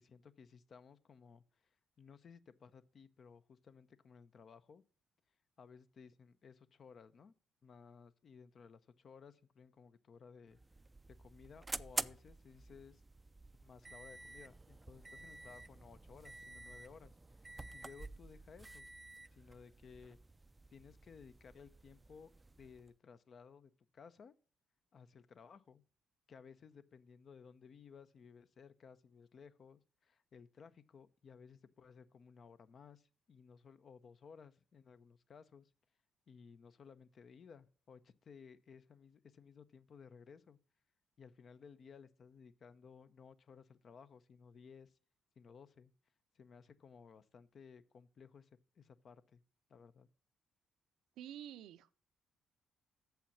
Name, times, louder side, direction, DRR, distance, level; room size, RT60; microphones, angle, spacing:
voice 1, 0.0-4.8 5.6-7.3 7.6-10.6 11.2-13.0 13.6-17.5 17.7-18.9 19.3-20.2 20.7-24.3 24.9-25.8 26.3-35.7 36.3-40.6 41.2-45.0 45.4-45.9 46.3-48.5 48.8-49.4 49.7-50.1, left 6 dB, 50° left, 0.7 m, -58 dB
sound 1, 10.5-22.9, right 2 dB, 20° right, 0.4 m, -49 dB
voice 2, 51.2-51.9, right 11 dB, 85° right, 0.5 m, -49 dB
7.1 x 5.8 x 7.1 m
cardioid pair, 90°, 0 cm